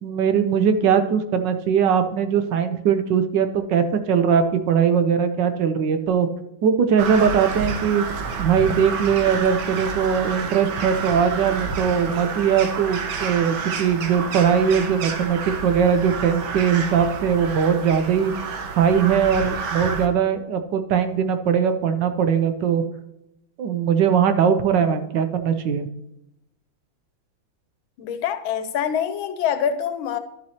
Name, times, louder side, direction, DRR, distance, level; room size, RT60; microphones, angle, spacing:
voice 1, 0.0-6.3 6.6-8.0 8.4-18.3 18.8-22.8 23.6-25.9, right 7 dB, 70° right, 1.4 m, -20 dB
Crow, 7.0-20.1, right 5 dB, 85° right, 1.8 m, -29 dB
voice 2, 28.0-30.2, left 8 dB, 90° left, 1.6 m, -25 dB
11.5 x 7.5 x 2.9 m
omnidirectional pair, 2.2 m